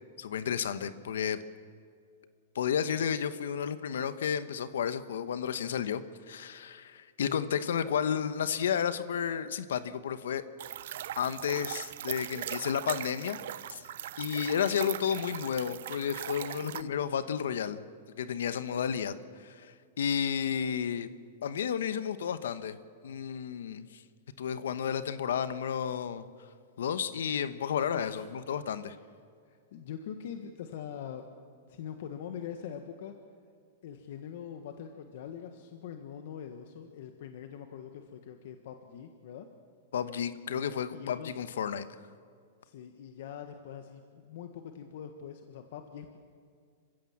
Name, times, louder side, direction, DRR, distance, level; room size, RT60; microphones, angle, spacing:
voice 1, 0.2-1.4 2.5-6.0 6.3-10.4 11.2-13.4 13.7-13.8 14.2-17.8 18.2-21.1 21.4-22.8 23.0-24.0 24.4-26.3 26.8-29.0 39.9-41.9, left 8 dB, 85° left, 12 dB, 1.1 m, -32 dB
sound 1, 10.6-16.8, right 12 dB, 65° right, 0.7 m, -40 dB
voice 2, 27.9-28.3 29.5-31.2 31.7-33.1 33.8-39.5 40.9-41.4 42.6-46.2, left 8 dB, 60° left, 6 dB, 1.5 m, -43 dB
27.0 x 16.0 x 7.4 m, 2.2 s
supercardioid pair, 155°, 0 cm